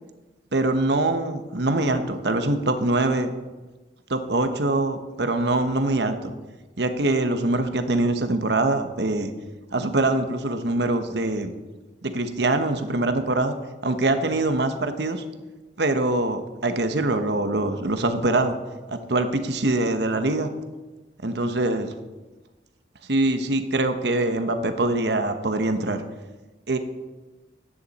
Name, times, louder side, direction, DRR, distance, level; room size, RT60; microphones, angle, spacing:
voice 1, 0.5-3.3 4.1-6.3 6.8-9.3 9.7-11.5 12.0-13.5 13.8-15.2 15.8-18.6 18.9-20.5 21.2-21.9 23.1-26.0 26.7-26.8, right 2 dB, 75° right, 8 dB, 1.1 m, -23 dB
15.5 x 10.0 x 4.2 m, 1.2 s
head